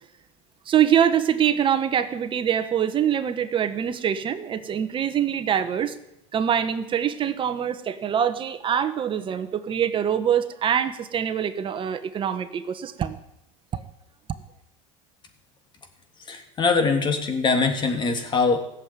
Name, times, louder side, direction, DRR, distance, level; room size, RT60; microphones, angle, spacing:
voice 1, 0.7-5.9 6.3-13.2 13.7-13.8, right 9 dB, 30° right, 10 dB, 1.3 m, -24 dB
voice 2, 16.2-18.6, left 4 dB, 30° left, 5 dB, 3.0 m, -22 dB
16.5 x 7.7 x 9.6 m, 0.86 s
supercardioid pair, 110°, 16 cm